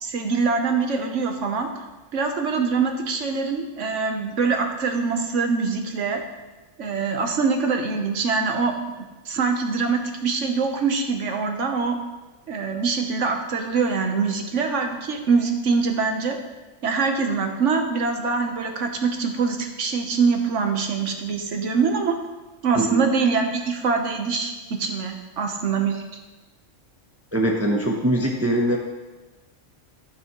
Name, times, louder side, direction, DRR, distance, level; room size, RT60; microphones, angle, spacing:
voice 1, 0.0-1.7 2.1-6.2 6.8-8.7 9.2-12.0 12.5-16.4 16.8-22.1 22.6-26.0, right 5 dB, 70° right, 4 dB, 1.3 m, -24 dB
voice 2, 27.3-28.8, right 1 dB, 15° right, 0 dB, 0.8 m, -22 dB
14.0 x 6.2 x 3.1 m, 1.2 s
omnidirectional pair, 1.3 m